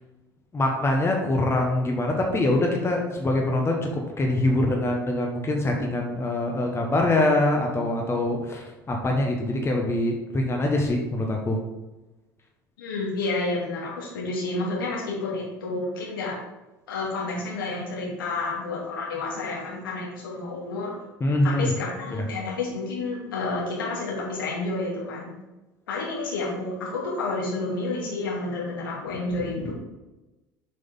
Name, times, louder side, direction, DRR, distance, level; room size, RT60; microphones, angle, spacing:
voice 1, 0.5-11.6 21.2-21.7 22.1-22.2, left 1 dB, 25° left, 1 dB, 1.3 m, -24 dB
voice 2, 12.8-16.3 16.9-20.9 21.4-25.3 25.9-29.7, left 3 dB, 80° left, -5 dB, 2.6 m, -30 dB
7.7 x 5.2 x 3.9 m, 1.1 s
figure-of-eight pair, 70°, 11 cm